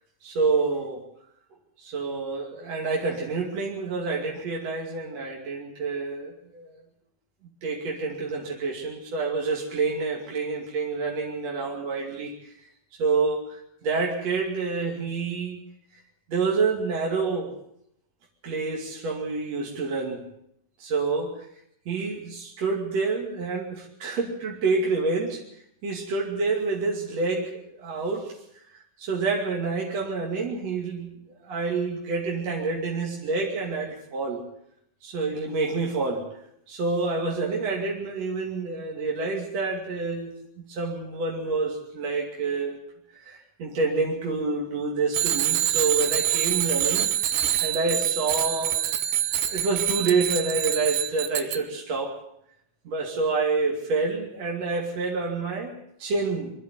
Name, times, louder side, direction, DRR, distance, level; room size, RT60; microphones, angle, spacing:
voice 1, 0.2-1.0 1.8-6.8 7.6-12.5 13.0-15.6 16.3-17.6 18.4-20.2 20.8-21.5 21.9-25.4 25.8-28.3 29.0-31.1 31.4-34.4 35.0-36.3 36.7-40.3 40.7-42.8 43.2-47.1 47.6-48.8 49.5-52.2 52.8-56.5, right 4 dB, 40° right, -1 dB, 3.1 m, -28 dB
Bicycle bell, 45.1-51.6, right 11 dB, 75° right, 2.9 m, -25 dB
24.0 x 13.0 x 9.3 m, 0.74 s
omnidirectional pair, 5.4 m